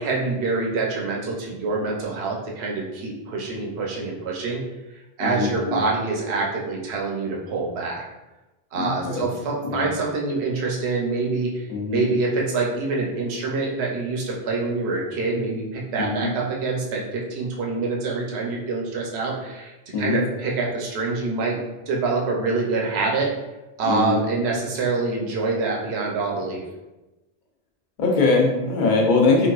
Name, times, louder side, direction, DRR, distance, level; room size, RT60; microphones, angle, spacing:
voice 1, 0.0-4.6 5.2-8.0 8.7-11.6 11.9-19.7 20.0-21.6 21.9-23.3 23.8-26.6, right 3 dB, 80° right, -1 dB, 0.9 m, -26 dB
voice 2, 5.2-5.8 8.7-9.3 9.6-9.9 11.7-12.1 16.0-16.3 19.9-20.3 23.8-24.2 28.0-29.5, left 3 dB, 55° left, 0 dB, 0.7 m, -22 dB
3.9 x 2.4 x 2.3 m, 1.0 s
omnidirectional pair, 1.1 m